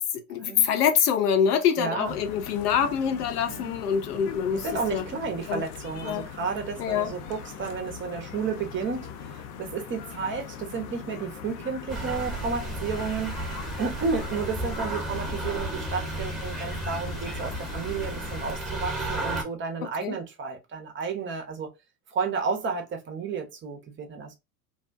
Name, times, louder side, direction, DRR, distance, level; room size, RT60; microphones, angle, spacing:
voice 1, 0.3-5.1 5.5-5.6 6.0-6.3 6.8-7.1 19.8-20.2, left 8 dB, 75° left, 0.7 m, -25 dB
voice 2, 1.8-2.1 3.5-3.8 4.5-21.7 22.1-24.3, right 5 dB, 25° right, 0.6 m, -32 dB
sound 1, 2.0-18.6, left 7 dB, 40° left, 0.4 m, -41 dB
sound 2, 11.9-19.4, right 2 dB, ahead, 0.9 m, -33 dB
2.6 x 2.1 x 2.5 m
hypercardioid pair, 80°, 47 cm